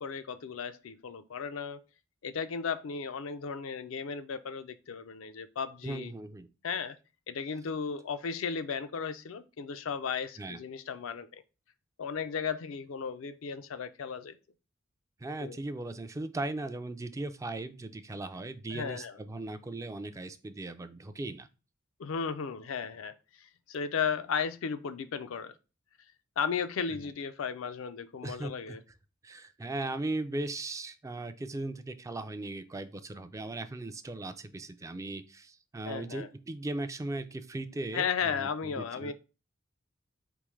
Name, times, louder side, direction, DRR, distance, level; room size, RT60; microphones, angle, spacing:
voice 1, 0.0-1.8 2.2-6.1 6.6-7.0 7.3-11.4 12.0-14.4 15.4-15.6 18.7-19.2 22.0-23.1 23.7-25.6 26.4-28.8 35.8-36.3 37.9-39.1, left 6 dB, 70° left, 0.4 m, -35 dB
voice 2, 5.8-6.5 10.4-10.6 15.2-21.5 26.9-27.0 28.2-28.8 29.2-39.1, right 2 dB, 15° right, 0.3 m, -38 dB
4.3 x 3.5 x 3.1 m
head